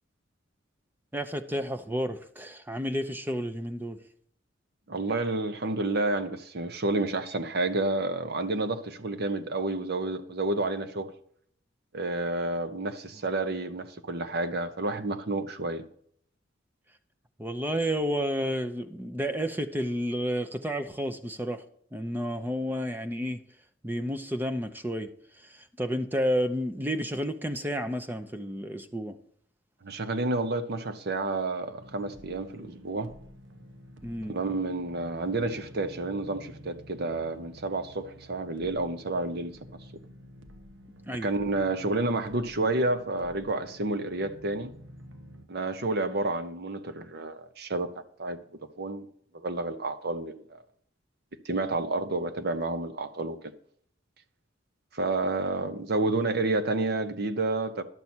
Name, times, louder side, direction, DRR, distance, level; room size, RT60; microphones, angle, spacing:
voice 1, 1.1-4.0 17.4-21.6 21.9-23.4 23.8-25.1 25.4-29.2 34.0-34.4 41.1-41.3, equal, 10° right, 0.6 m, -31 dB
voice 2, 4.9-11.1 11.9-15.8 29.8-33.1 34.3-39.5 41.1-44.7 45.5-47.9 48.2-48.4 48.8-49.1 49.3-50.4 51.4-53.4 54.9-57.8, right 2 dB, 55° right, 0.9 m, -30 dB
sound 1, 31.8-45.5, equal, 80° right, 1.0 m, -50 dB
11.0 x 6.9 x 4.4 m
head